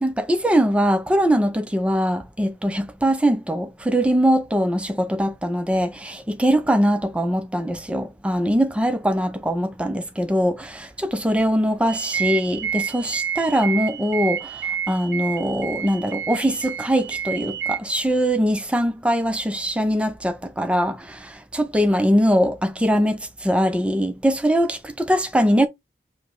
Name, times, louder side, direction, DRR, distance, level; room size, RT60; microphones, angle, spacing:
voice 1, 0.0-14.6 14.9-25.7, equal, 5° right, 0.4 m, -22 dB
sound 1, 11.9-17.8, right 8 dB, 75° right, 0.4 m, -29 dB
4.8 x 2.1 x 3.6 m
head